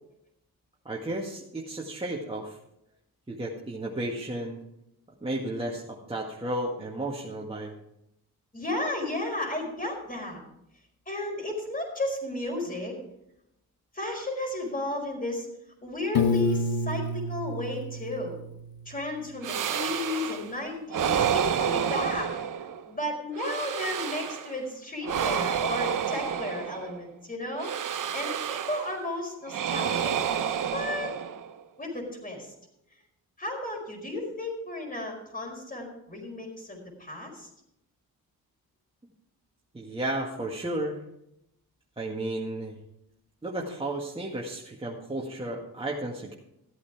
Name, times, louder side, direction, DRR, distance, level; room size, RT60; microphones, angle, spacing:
voice 1, 0.9-2.6 3.3-4.6 5.2-7.7 39.7-41.0 42.0-42.8 43.4-46.3, right 1 dB, 15° right, -3 dB, 1.8 m, -33 dB
voice 2, 8.5-10.4 11.1-13.0 13.9-15.5 15.8-18.4 18.8-22.3 22.9-30.2 30.7-31.1 31.8-32.5 33.4-37.5, left 2 dB, 20° left, 2 dB, 4.8 m, -33 dB
Piano, 16.1-19.1, left 3 dB, 70° left, 1.3 m, -29 dB
sound 1, 19.4-20.5 20.9-22.9 23.3-24.6 25.0-27.0 27.6-29.0 29.5-31.6, right 8 dB, 55° right, 0.9 m, -29 dB
14.5 x 8.4 x 4.7 m, 0.81 s
cardioid pair, 75°, 38 cm